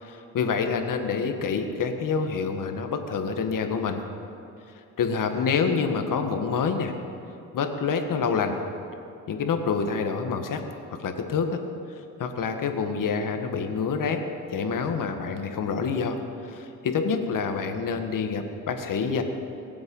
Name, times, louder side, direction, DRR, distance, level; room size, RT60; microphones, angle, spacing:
voice 1, 0.0-4.0 5.0-6.9 7.5-8.6 9.3-10.6 11.0-11.6 12.2-14.2 14.5-19.2, left 5 dB, 65° left, 6 dB, 1.7 m, -27 dB
23.0 x 7.8 x 5.5 m, 2.8 s
supercardioid pair, 70°, 34 cm